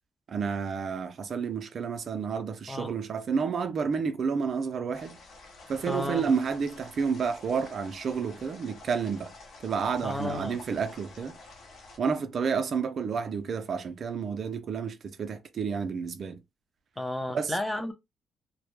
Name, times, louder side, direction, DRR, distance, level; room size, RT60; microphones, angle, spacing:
voice 1, 0.3-5.2 5.7-9.3 9.6-11.4 12.0-16.4 17.3-17.6, right 6 dB, 55° right, 0.4 m, -30 dB
sound 1, 4.9-12.0, left 3 dB, 65° left, 0.8 m, -50 dB
voice 2, 5.9-6.2 10.0-10.6 17.0-17.9, left 1 dB, 10° left, 0.5 m, -32 dB
2.1 x 2.0 x 3.0 m
cardioid pair, 90°, 0 cm